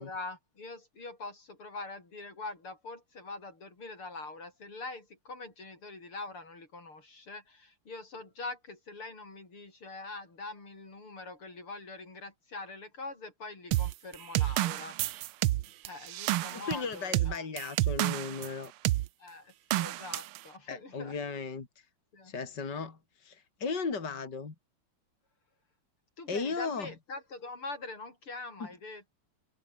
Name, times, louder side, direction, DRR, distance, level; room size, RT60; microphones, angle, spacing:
voice 1, 0.0-15.0 15.8-17.5 19.2-21.2 22.1-22.3 26.2-29.1, left 3 dB, 85° left, 7.5 m, -43 dB
sound 1, 13.7-18.5 18.9-19.1 19.7-20.4, right 16 dB, 85° right, 1.5 m, -29 dB
voice 2, 16.5-18.7 20.7-21.7 22.2-24.5 26.3-26.9, left 4 dB, 50° left, 3.7 m, -36 dB
omnidirectional pair, 2.3 m